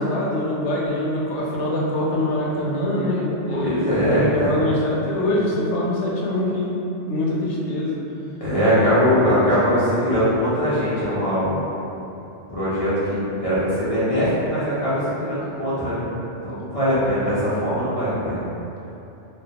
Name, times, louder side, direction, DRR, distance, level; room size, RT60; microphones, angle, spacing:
voice 1, 0.0-6.8 7.1-8.0, left 1 dB, 75° left, -5 dB, 0.9 m, -24 dB
voice 2, 3.5-4.5 8.4-11.6 11.9-12.1 12.5-16.1 16.4-18.4, equal, 50° left, -12 dB, 0.4 m, -21 dB
2.2 x 2.2 x 2.7 m, 2.9 s
omnidirectional pair, 1.3 m